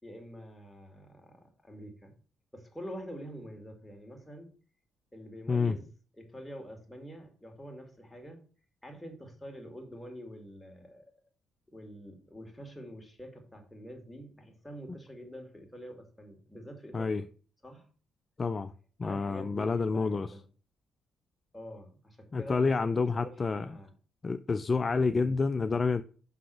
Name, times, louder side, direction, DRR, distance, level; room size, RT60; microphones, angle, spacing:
voice 1, 0.0-2.1 2.5-4.5 5.1-5.9 6.2-8.4 8.8-11.1 11.7-17.2 17.6-17.9 19.0-20.4 21.5-23.9 25.1-25.3, equal, 5° left, 2.0 m, -46 dB
voice 2, 18.4-18.7 19.0-20.3 22.3-23.7 24.2-26.0, left 4 dB, 35° left, 0.3 m, -28 dB
5.7 x 4.1 x 6.1 m
cardioid pair, 90°, 0 cm